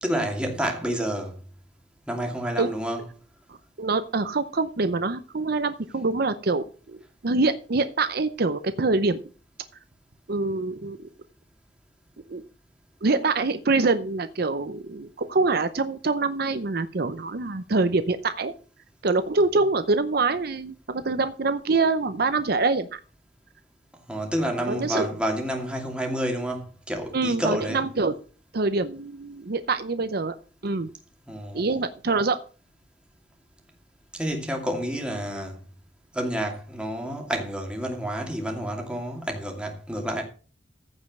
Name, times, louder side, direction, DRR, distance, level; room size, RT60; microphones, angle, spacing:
voice 1, 0.0-1.4 2.1-3.0 24.1-27.8 31.3-31.6 34.1-35.6 36.1-40.2, equal, 5° right, 2.5 m, -29 dB
voice 2, 3.5-7.0 7.2-9.2 10.3-11.0 12.3-12.4 13.0-18.5 19.0-23.0 24.7-25.1 27.1-28.2 28.5-30.3 30.6-30.9 31.5-32.4, right 3 dB, 60° right, 0.7 m, -25 dB
15.0 x 5.3 x 6.0 m
head